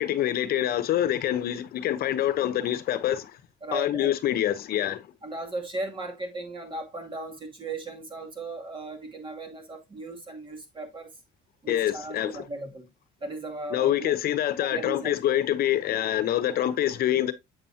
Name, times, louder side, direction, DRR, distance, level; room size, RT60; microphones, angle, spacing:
voice 1, 0.0-3.3 3.7-5.0 11.7-12.4 13.7-17.3, left 12 dB, 65° left, 0.9 m, -26 dB
voice 2, 3.6-4.1 5.2-11.1 11.6-12.9 13.2-14.1 14.7-15.1, right 2 dB, 30° right, 2.6 m, -36 dB
8.2 x 6.9 x 2.8 m
cardioid pair, 110°, 17 cm